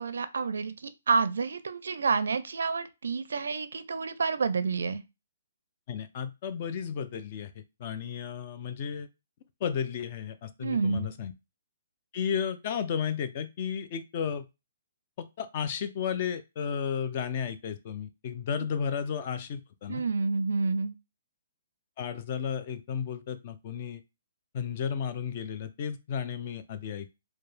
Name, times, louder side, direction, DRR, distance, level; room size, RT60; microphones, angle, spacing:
voice 1, 0.0-5.0 10.6-11.1 19.9-20.9, right 4 dB, 70° right, 12 dB, 0.4 m, -29 dB
voice 2, 5.9-9.1 9.6-11.3 12.1-14.4 15.2-20.0 22.0-24.0 24.5-27.1, left 7 dB, 25° left, 11 dB, 0.3 m, -33 dB
4.6 x 2.2 x 3.2 m, 0.25 s
hypercardioid pair, 180°, 0 cm